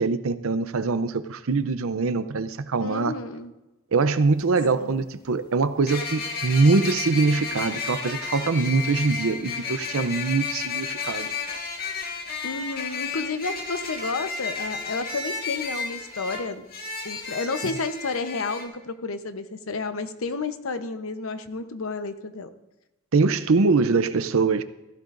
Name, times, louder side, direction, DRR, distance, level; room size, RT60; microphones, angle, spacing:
voice 1, 0.0-3.1 3.9-11.3 23.1-24.6, right 4 dB, 85° right, 0.6 m, -23 dB
voice 2, 2.8-3.5 4.8-5.1 12.4-16.7 17.0-22.5, left 3 dB, 90° left, 0.9 m, -31 dB
sound 1, 4.2-4.3 5.9-18.7, left 5 dB, 45° left, 1.9 m, -32 dB
15.5 x 15.0 x 2.6 m
head